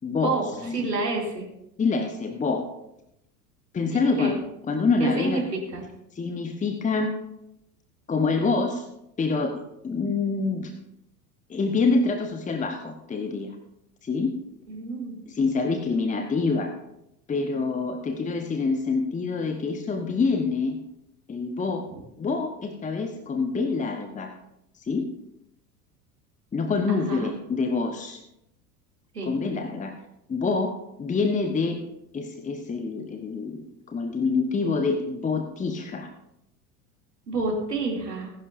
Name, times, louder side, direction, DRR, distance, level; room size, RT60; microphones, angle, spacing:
voice 1, 0.0-0.9 1.8-2.7 3.7-4.3 4.7-5.4 6.2-7.1 8.1-8.8 9.2-10.7 11.5-13.5 14.0-14.3 15.3-16.7 17.3-20.8 21.3-21.9 22.2-24.3 24.8-25.1 26.5-28.2 29.2-29.9 30.3-30.7 31.0-31.8 32.1-36.1, left 4 dB, 15° left, 6 dB, 1.1 m, -26 dB
voice 2, 0.7-1.5 3.9-4.4 5.0-5.8 14.7-15.2 21.9-22.0 26.9-27.3 29.1-29.4 37.3-38.3, right 3 dB, 80° right, 0 dB, 2.9 m, -29 dB
20.0 x 11.0 x 2.7 m, 0.81 s
figure-of-eight pair, 75°, 48 cm